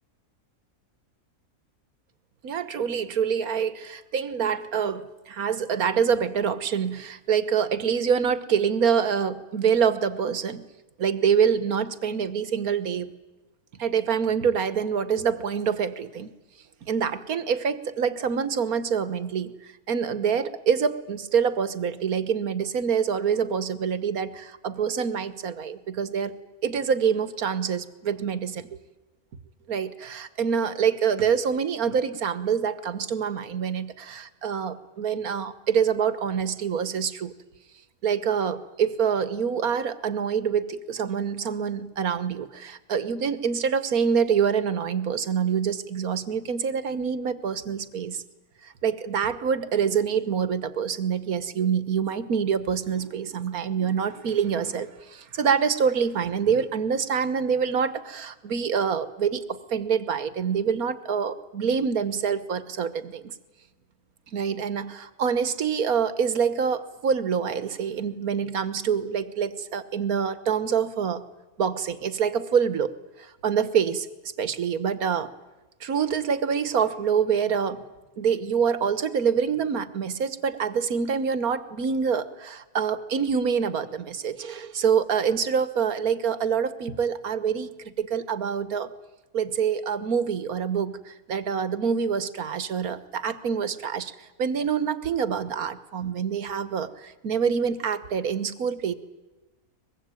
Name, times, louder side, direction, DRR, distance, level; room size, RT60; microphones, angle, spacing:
voice 1, 2.4-10.7 11.0-13.1 13.8-16.3 16.9-26.4 26.6-28.7 29.7-37.3 38.0-48.2 48.6-63.3 64.3-71.2 71.6-74.1 74.4-75.3 75.8-77.8 78.2-88.9 89.3-98.9, right 7 dB, 90° right, 14 dB, 1.8 m, -26 dB
23.5 x 21.5 x 9.2 m, 1.1 s
omnidirectional pair, 1.5 m